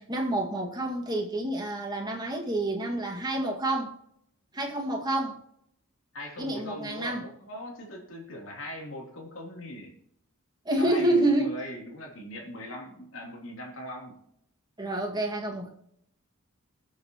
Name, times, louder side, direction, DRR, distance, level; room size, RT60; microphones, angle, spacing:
voice 1, 0.0-3.9 4.5-5.4 6.4-7.2 10.7-11.6 14.8-15.7, right 1 dB, 20° right, 2.0 m, -28 dB
voice 2, 6.1-9.9 10.8-14.2, equal, 65° left, 3.3 m, -40 dB
20.5 x 7.1 x 3.0 m
head